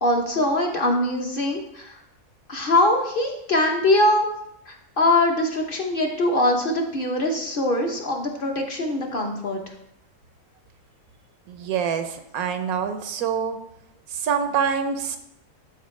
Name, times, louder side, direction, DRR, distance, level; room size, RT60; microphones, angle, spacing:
voice 1, 0.0-1.9 2.5-4.3 4.7-9.6, left 1 dB, 45° left, 2 dB, 1.0 m, -22 dB
voice 2, 11.5-13.6 14.2-15.2, right 7 dB, 85° right, 8 dB, 1.2 m, -25 dB
12.5 x 4.2 x 3.2 m, 0.77 s
omnidirectional pair, 1.5 m